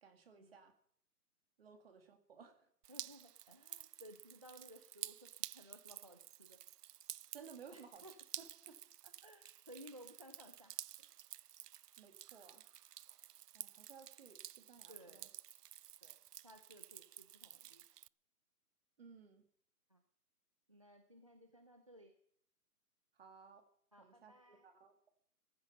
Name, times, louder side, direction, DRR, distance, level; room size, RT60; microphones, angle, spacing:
voice 1, 0.0-0.7 1.6-2.7 7.3-8.0 8.4-8.8 9.2-9.3 12.0-12.6 13.5-15.3 19.0-19.4 23.2-23.6 24.0-25.1, right 6 dB, 40° right, 7 dB, 2.4 m, -58 dB
Drip, 2.8-18.1, right 11 dB, 85° right, 0.5 m, -52 dB
voice 2, 2.9-6.6 7.7-8.1 9.0-11.1 14.9-15.3 16.0-16.2 16.4-17.8 19.9-20.0 20.7-22.1 23.9-24.7, equal, 20° right, 7 dB, 0.6 m, -59 dB
16.5 x 15.0 x 5.5 m, 0.65 s
hypercardioid pair, 170°, 46 cm